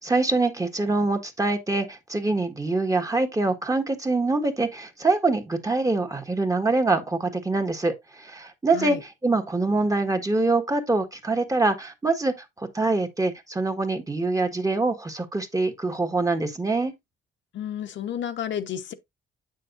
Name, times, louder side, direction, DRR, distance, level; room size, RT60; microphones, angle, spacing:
voice 1, 0.0-16.9, right 3 dB, 15° right, 1.5 m, -24 dB
voice 2, 17.5-18.9, left 9 dB, 70° left, 1.0 m, -31 dB
7.8 x 6.5 x 2.5 m
cardioid pair, 90°, 20 cm